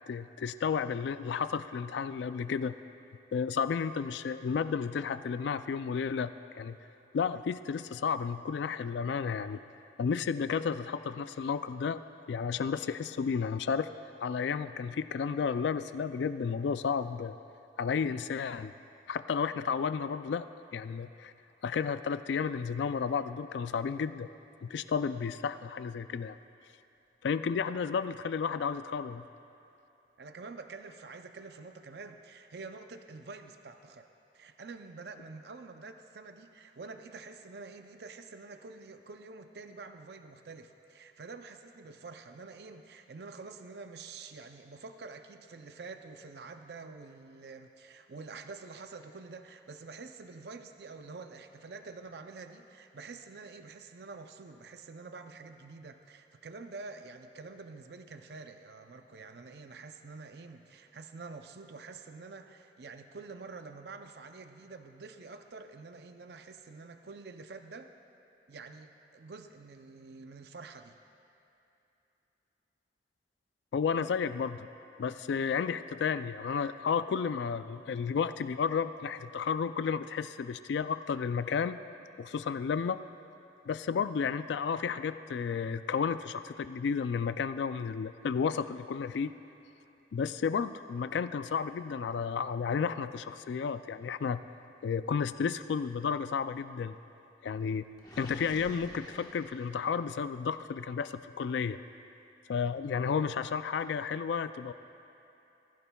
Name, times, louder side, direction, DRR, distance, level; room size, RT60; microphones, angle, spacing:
voice 1, 0.1-2.8 3.3-6.8 7.1-9.6 10.0-12.0 12.3-13.9 14.2-17.3 17.8-18.7 19.1-20.5 20.7-21.3 21.6-24.3 24.6-26.4 27.2-29.3 73.7-74.7 75.0-81.8 82.2-83.0 83.7-89.3 90.1-94.4 94.8-97.0 97.4-97.9 98.2-101.8 102.5-104.7, left 6 dB, 75° left, 12 dB, 0.3 m, -32 dB
voice 2, 30.2-34.1 34.3-67.9 68.5-71.0, right 4 dB, 65° right, 7 dB, 0.5 m, -47 dB
Gurgling, 98.0-100.1, left 1 dB, 20° left, 1.2 m, -50 dB
20.0 x 15.5 x 2.3 m, 2.9 s
head